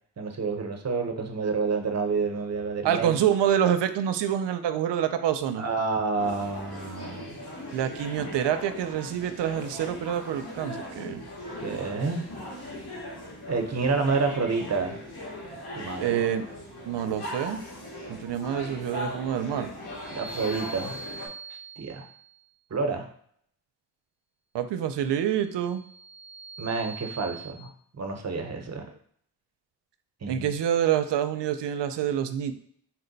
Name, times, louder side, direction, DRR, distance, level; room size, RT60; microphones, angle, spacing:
voice 1, 0.2-3.2 5.6-7.4 11.6-12.2 13.5-15.0 15.7-16.2 20.1-21.0 21.5-22.1 22.7-23.1 26.6-28.9 30.2-30.5, right 4 dB, 40° right, 4 dB, 0.7 m, -29 dB
voice 2, 2.8-5.6 7.7-11.2 16.0-16.5 16.8-17.6 18.1-19.7 24.5-25.9 30.3-32.5, right 10 dB, 80° right, 10 dB, 0.5 m, -27 dB
sound 1, 6.2-21.3, left 1 dB, 65° left, 1.5 m, -39 dB
sound 2, 19.9-22.5 25.4-27.5, right 3 dB, 10° left, 0.7 m, -43 dB
4.4 x 2.2 x 3.9 m, 0.63 s
cardioid pair, 85°, 42 cm